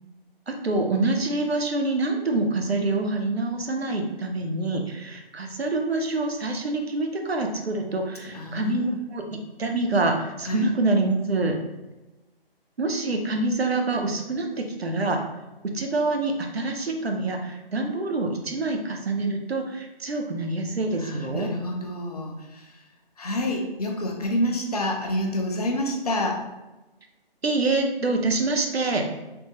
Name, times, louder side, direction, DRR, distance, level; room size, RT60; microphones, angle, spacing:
voice 1, 0.5-11.5 12.8-15.2 15.7-21.5 27.4-29.0, right 2 dB, 80° right, 3 dB, 0.7 m, -26 dB
voice 2, 8.2-9.0 10.5-10.6 21.0-22.8 23.2-26.4, left 1 dB, 40° left, 1 dB, 0.5 m, -28 dB
3.4 x 2.2 x 2.8 m, 1.1 s
figure-of-eight pair, 145°, 31 cm